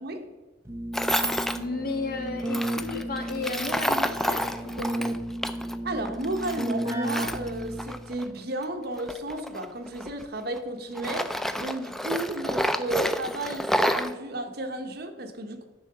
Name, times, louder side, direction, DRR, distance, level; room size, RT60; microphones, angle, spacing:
voice 1, 0.0-0.4 5.8-15.6, right 1 dB, 55° right, 6 dB, 0.9 m, -33 dB
Keyboard (musical), 0.6-8.2, right 1 dB, 15° right, 0.8 m, -33 dB
Tools, 0.9-1.6 2.5-5.8 6.1-8.3 9.0-10.6 11.0-14.1, equal, ahead, 0.3 m, -29 dB
voice 2, 1.5-5.1, left 3 dB, 55° left, 4 dB, 1.2 m, -33 dB
10.5 x 3.7 x 6.7 m, 1.3 s
head